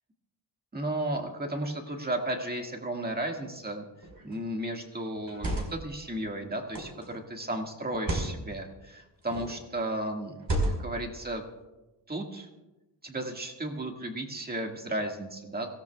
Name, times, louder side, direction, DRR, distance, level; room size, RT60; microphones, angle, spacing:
voice 1, 0.7-3.9 4.2-10.4 10.8-11.4 12.1-12.5 13.0-15.7, right 1 dB, 20° right, 2 dB, 1.8 m, -34 dB
sound 1, 4.0-4.3 5.2-5.9 6.7-7.1 7.9-8.3 9.2-9.6 10.4-11.0, right 1 dB, 50° right, 4.2 m, -31 dB
25.0 x 17.0 x 2.3 m, 1.0 s
wide cardioid pair, 155°, 45 cm